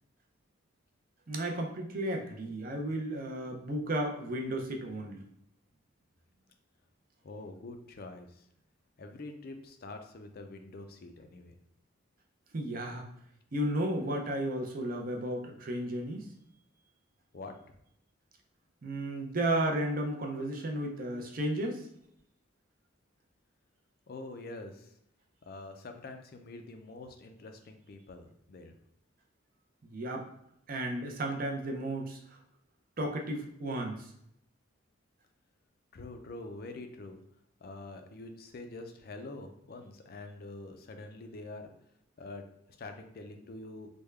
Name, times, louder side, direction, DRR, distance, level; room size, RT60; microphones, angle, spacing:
voice 1, 1.3-5.2 12.5-13.1 13.5-16.3 18.8-21.9 29.9-30.3 30.7-32.2 33.0-34.1, right 1 dB, 45° right, 2 dB, 0.5 m, -33 dB
voice 2, 7.2-8.5 9.0-11.6 17.3-17.5 24.1-24.9 25.5-28.8 35.9-37.2 37.6-41.6 42.2-42.4 42.8-43.9, left 2 dB, 50° left, 6 dB, 0.4 m, -45 dB
3.5 x 2.2 x 3.2 m, 0.74 s
head